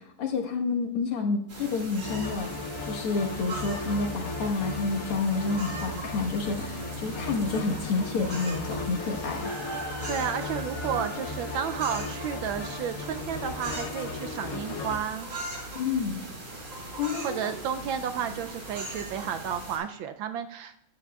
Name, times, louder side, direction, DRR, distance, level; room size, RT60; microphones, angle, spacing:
voice 1, 0.0-2.5 2.8-9.5 15.7-16.2 17.0-17.5, left 4 dB, 80° left, 1 dB, 2.2 m, -29 dB
sound 1, 1.5-19.8, right 2 dB, 55° right, 4.7 m, -39 dB
sound 2, 2.0-15.0, left 3 dB, 60° left, 0.8 m, -36 dB
voice 2, 9.8-15.3 17.2-20.8, right 8 dB, 75° right, 8 dB, 1.2 m, -32 dB
14.0 x 9.8 x 2.3 m, 0.74 s
omnidirectional pair, 2.4 m